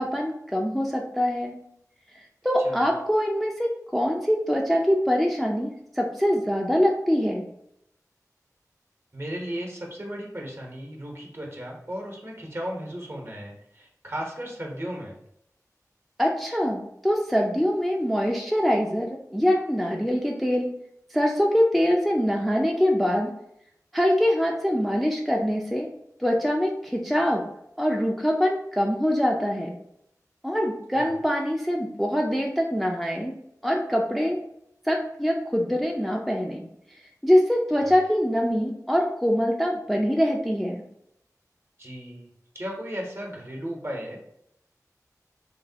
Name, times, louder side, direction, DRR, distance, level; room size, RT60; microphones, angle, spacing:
voice 1, 0.0-1.6 2.4-7.5 16.2-20.7 21.1-23.3 23.9-25.9 26.2-27.4 27.8-29.7 30.4-33.3 33.6-34.4 34.9-36.6 37.2-40.8, equal, ahead, 0 dB, 0.3 m, -24 dB
voice 2, 2.6-2.9 9.1-15.2 30.9-31.1 37.8-37.9 41.8-42.3 42.5-44.2, equal, 40° right, 0 dB, 0.8 m, -35 dB
3.0 x 2.1 x 2.7 m, 0.75 s
wide cardioid pair, 45°, 6 cm